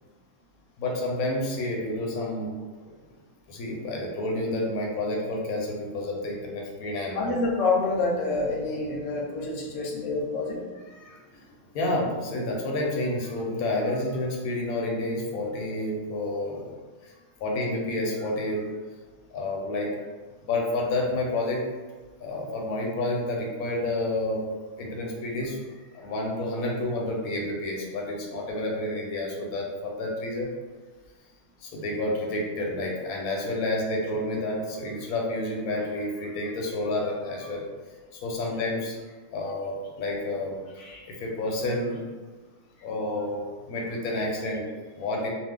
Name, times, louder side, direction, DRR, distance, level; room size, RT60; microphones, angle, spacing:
voice 1, 0.8-2.5 2.8-2.9 3.5-7.4 10.9-16.7 17.0-17.1 17.4-18.6 19.3-19.9 20.4-21.6 22.2-24.4 24.8-25.6 25.9-30.5 31.6-37.6 38.1-42.0 42.8-44.7 45.0-45.3, left 1 dB, 85° left, -1 dB, 1.1 m, -30 dB
voice 2, 7.1-10.6, left 3 dB, 65° left, -2 dB, 0.9 m, -27 dB
2.5 x 2.4 x 3.5 m, 1.4 s
omnidirectional pair, 1.5 m